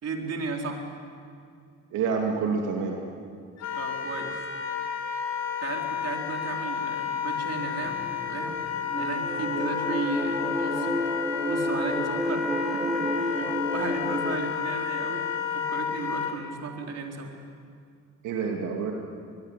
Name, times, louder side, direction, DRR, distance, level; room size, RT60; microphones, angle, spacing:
voice 1, 0.0-0.8 3.7-4.4 5.6-8.0 8.3-8.6 8.9-11.0 11.5-15.3 15.5-17.3, right 4 dB, 55° right, 2 dB, 4.1 m, -35 dB
voice 2, 1.9-3.0 18.2-18.9, right 5 dB, 90° right, 1 dB, 2.6 m, -27 dB
Wind instrument woodwind instrument, 3.6-16.3, left 7 dB, 60° left, 3.4 m, -31 dB
sound 1, 7.8-14.4, equal, 10° right, 3.7 m, -30 dB
23.5 x 21.5 x 9.9 m, 2.2 s
cardioid pair, 90°, 30 cm